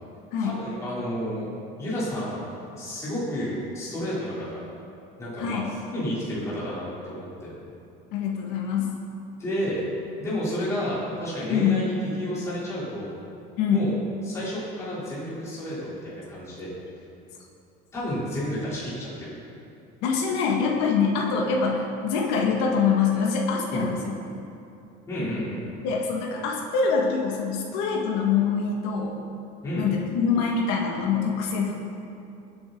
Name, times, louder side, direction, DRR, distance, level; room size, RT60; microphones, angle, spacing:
voice 1, 0.4-1.5 1.8-2.5 2.8-4.6 5.2-7.5 9.4-9.9 10.2-13.1 13.7-14.0 14.2-16.7 17.9-19.4 23.7-23.9 25.1-25.6 29.6-29.9, equal, 15° left, -9 dB, 3.7 m, -31 dB
voice 2, 5.4-5.7 8.1-9.0 11.5-11.8 13.6-13.9 20.0-24.2 25.8-29.2 29.8-31.7, left 5 dB, 65° left, -1 dB, 2.0 m, -24 dB
23.0 x 8.4 x 4.0 m, 2.7 s
cardioid pair, 175°, 18 cm